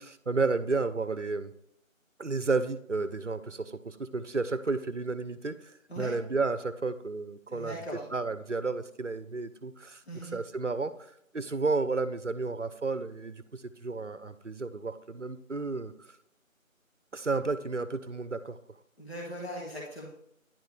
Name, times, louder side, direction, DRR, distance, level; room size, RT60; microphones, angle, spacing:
voice 1, 0.0-1.5 2.2-7.7 8.1-10.0 10.3-10.9 11.3-15.9 17.1-18.6, right 3 dB, 60° right, 14 dB, 0.7 m, -32 dB
voice 2, 7.5-8.1 10.0-10.4 19.0-20.1, equal, 50° left, -3 dB, 1.8 m, -39 dB
10.5 x 4.5 x 3.2 m, 0.72 s
figure-of-eight pair, 180°, 41 cm